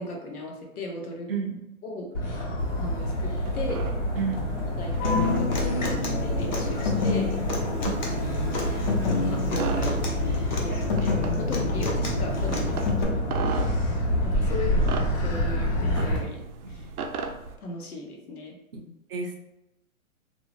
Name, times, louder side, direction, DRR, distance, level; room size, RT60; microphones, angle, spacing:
voice 1, 0.0-1.3 1.8-2.1 2.8-3.8 4.8-7.4 8.9-13.3 14.2-16.4 16.7-16.8 17.6-18.6, left 2 dB, 85° left, 1 dB, 0.9 m, -37 dB
voice 2, 1.3-1.6 4.1-4.4 13.6-13.7 16.6-16.9 18.7-18.8 19.1-19.3, right 6 dB, 45° right, 2 dB, 0.5 m, -31 dB
Motor vehicle (road), 2.1-16.2, left 1 dB, 60° left, 1.3 m, -27 dB
sound 1, 2.6-17.6, right 4 dB, 90° right, 0.6 m, -39 dB
Human voice / Acoustic guitar, 5.0-13.0, left 3 dB, 35° left, 0.4 m, -29 dB
2.7 x 2.0 x 3.0 m, 0.89 s
hypercardioid pair, 145°, 43 cm